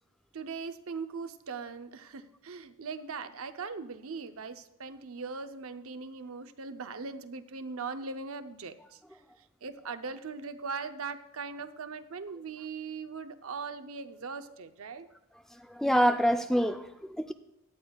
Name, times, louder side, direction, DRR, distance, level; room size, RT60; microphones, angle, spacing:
voice 1, 0.3-8.8 9.6-15.1, right 4 dB, 75° right, 10 dB, 0.7 m, -40 dB
voice 2, 15.7-17.3, equal, ahead, 7 dB, 0.4 m, -26 dB
17.0 x 11.0 x 2.3 m, 0.87 s
head